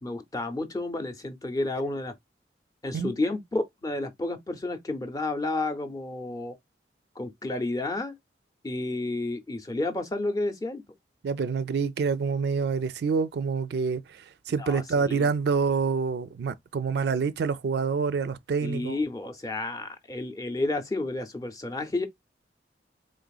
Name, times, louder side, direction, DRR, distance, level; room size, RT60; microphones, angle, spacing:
voice 1, 0.0-2.1 2.8-6.6 7.2-8.1 8.6-10.8 14.6-15.3 18.6-22.1, left 2 dB, 20° left, 0.6 m, -31 dB
voice 2, 11.2-19.0, right 5 dB, 65° right, 0.4 m, -27 dB
3.9 x 3.2 x 2.3 m
head